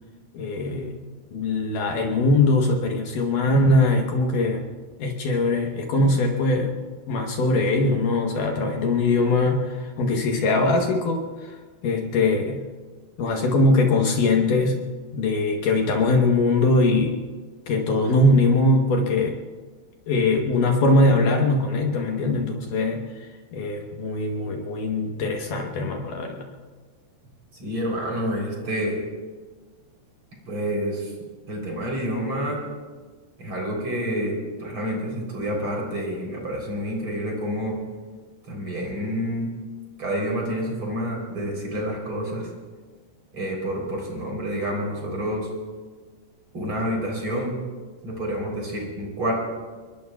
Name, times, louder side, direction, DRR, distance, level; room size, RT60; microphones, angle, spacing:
voice 1, 0.3-1.0 1.3-4.7 5.0-6.8 7.1-11.6 11.8-12.6 13.2-14.8 15.1-17.2 17.7-19.3 20.1-23.1 23.5-26.5, left 2 dB, 75° left, 2 dB, 1.9 m, -21 dB
voice 2, 27.6-29.0 30.5-31.1 31.5-32.6 33.4-37.8 38.5-39.5 40.0-42.5 43.3-45.5 46.5-47.6 48.0-49.3, equal, 30° right, -2 dB, 3.8 m, -28 dB
25.5 x 22.5 x 2.3 m, 1.4 s
omnidirectional pair, 5.3 m